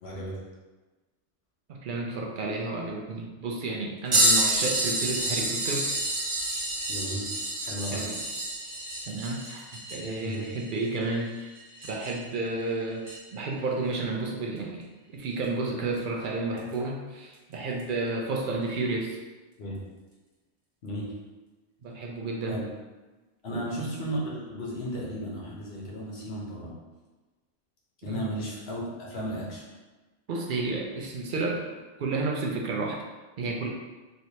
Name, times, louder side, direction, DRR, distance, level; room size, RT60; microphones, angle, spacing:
voice 1, 0.0-0.4 6.9-7.3 7.6-8.0 10.2-10.4 19.6-19.8 20.8-21.1 22.5-22.6 23.4-26.7 28.0-29.6, equal, 60° left, -4 dB, 1.1 m, -34 dB
voice 2, 1.7-5.9 7.9-8.2 9.1-11.5 11.8-13.0 13.3-14.8 15.1-19.2 21.8-22.6 23.5-24.0 28.1-28.3 30.3-31.7 32.0-33.0 33.4-33.7, right 3 dB, 60° right, 0 dB, 0.5 m, -31 dB
sound 1, 4.1-12.3 13.0-13.2 15.4-15.5 16.6-16.7 17.8-17.9, right 1 dB, 40° right, 0.9 m, -28 dB
3.2 x 2.8 x 2.8 m, 1.2 s
omnidirectional pair, 1.2 m